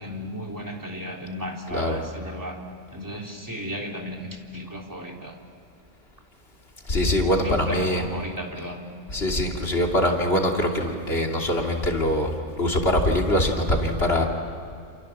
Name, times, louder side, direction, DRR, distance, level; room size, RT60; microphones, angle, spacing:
voice 1, 0.0-2.6 2.9-5.4 7.4-8.9, equal, 15° right, 0 dB, 3.3 m, -35 dB
voice 2, 6.9-8.0 9.1-12.3 12.6-14.3, left 1 dB, 50° left, 1 dB, 3.1 m, -23 dB
28.5 x 28.0 x 7.3 m, 2.4 s
omnidirectional pair, 1.3 m